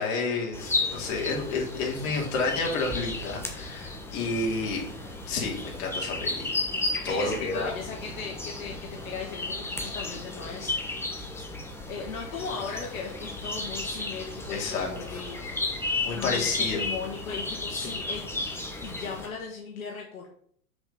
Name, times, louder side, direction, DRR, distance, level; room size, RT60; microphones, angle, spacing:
voice 1, 0.0-4.8 5.3-6.5 7.0-7.7 14.5-14.9 16.0-16.8 17.8-17.9, left 3 dB, 45° left, -1 dB, 2.8 m, -30 dB
sound 1, 0.5-19.3, left 2 dB, 5° left, 1.0 m, -34 dB
voice 2, 7.1-11.3 11.9-15.8 16.1-18.3 18.8-20.3, left 5 dB, 70° left, -1 dB, 1.7 m, -38 dB
6.1 x 5.2 x 5.5 m, 0.64 s
hypercardioid pair, 115°, 43 cm